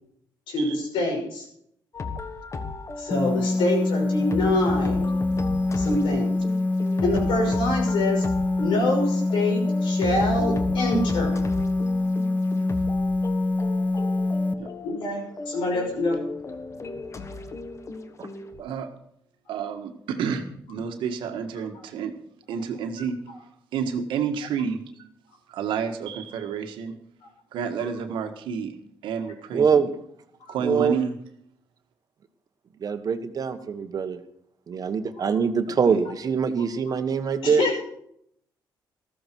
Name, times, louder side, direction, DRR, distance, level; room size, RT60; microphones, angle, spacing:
voice 1, 0.5-1.4 3.0-5.0 5.8-6.3 7.0-8.2 8.6-11.4 14.8-16.2 36.9-37.0 37.4-37.8, left 2 dB, 85° left, 1 dB, 5.8 m, -26 dB
sound 1, 1.9-18.6, left 3 dB, 35° left, 1.3 m, -36 dB
sound 2, 3.1-14.5, left 2 dB, 20° left, 0.7 m, -25 dB
voice 2, 18.6-18.9 19.5-22.2 22.5-23.2 23.7-25.1 25.5-27.0 27.5-28.8 29.0-29.9 30.5-31.2 35.7-36.0, right 6 dB, 85° right, 6 dB, 1.7 m, -30 dB
voice 3, 29.5-29.9 30.6-31.0 32.8-34.2 34.7-37.6, right 6 dB, 50° right, 9 dB, 1.4 m, -24 dB
14.0 x 14.0 x 4.6 m, 0.71 s
cardioid pair, 85°, 8 cm